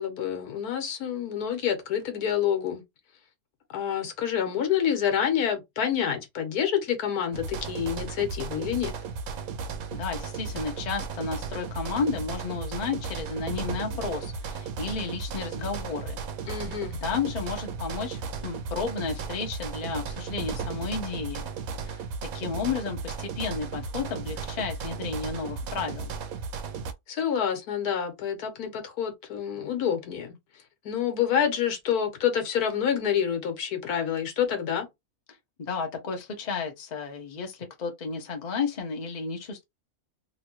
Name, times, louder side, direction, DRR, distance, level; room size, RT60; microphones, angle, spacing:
voice 1, 0.0-2.8 3.7-8.9 16.5-17.0 27.1-30.4 30.8-34.9, left 8 dB, 80° left, 1.4 m, -27 dB
sound 1, 7.3-26.9, right 5 dB, 75° right, 1.0 m, -35 dB
voice 2, 9.9-16.2 17.0-21.5 21.8-22.0 22.3-26.1 35.6-39.6, left 5 dB, 35° left, 0.8 m, -32 dB
3.1 x 2.6 x 2.9 m
omnidirectional pair, 1.6 m